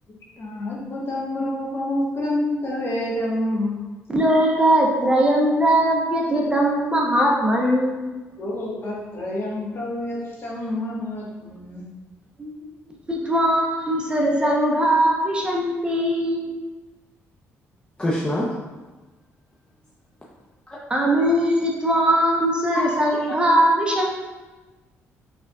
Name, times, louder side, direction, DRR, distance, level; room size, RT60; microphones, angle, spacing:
voice 1, 0.1-3.7 8.4-11.9, left 1 dB, 50° left, -4 dB, 1.4 m, -28 dB
voice 2, 4.1-8.2 12.4-12.6 13.1-16.6 20.9-24.1, right 1 dB, 20° right, -1 dB, 0.8 m, -20 dB
voice 3, 18.0-18.5 20.7-20.8 22.7-22.9, left 1 dB, 15° left, -6 dB, 0.7 m, -24 dB
5.2 x 3.5 x 2.3 m, 1.2 s
cardioid pair, 85°, 5 cm